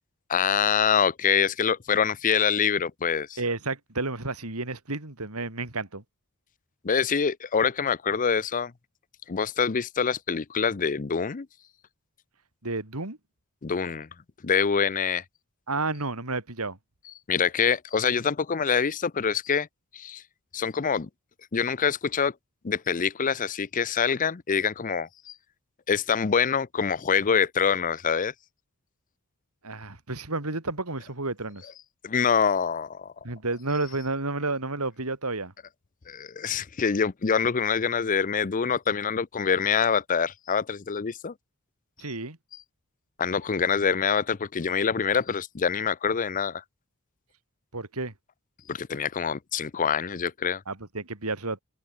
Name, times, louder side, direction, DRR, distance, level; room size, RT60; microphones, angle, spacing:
voice 1, 0.3-3.4 6.8-8.7 9.3-11.5 13.6-14.1 14.4-15.2 17.3-19.7 19.9-20.2 20.5-21.1 21.5-22.3 22.6-25.3 25.9-28.3 32.0-33.1 36.1-41.3 43.2-46.6 48.7-50.6, left 6 dB, 40° left, 0.5 m, -25 dB
voice 2, 3.4-6.0 12.6-13.2 15.7-16.8 29.6-31.6 33.2-35.5 42.0-42.4 47.7-48.1 50.7-51.6, right 3 dB, 85° right, 3.7 m, -31 dB
open air
head